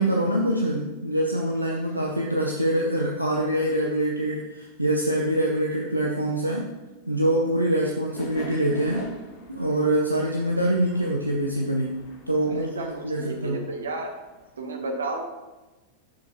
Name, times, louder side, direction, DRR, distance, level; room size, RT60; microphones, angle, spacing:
voice 1, 0.0-6.7 7.1-9.1 9.5-13.6, right 1 dB, 85° right, -1 dB, 0.6 m, -25 dB
sound 1, 8.1-14.6, left 1 dB, 40° left, 2.0 m, -45 dB
voice 2, 12.5-14.1 14.6-15.2, right 3 dB, 70° right, 3 dB, 1.1 m, -32 dB
7.4 x 6.3 x 3.0 m, 1.1 s
figure-of-eight pair, 90°, 0 cm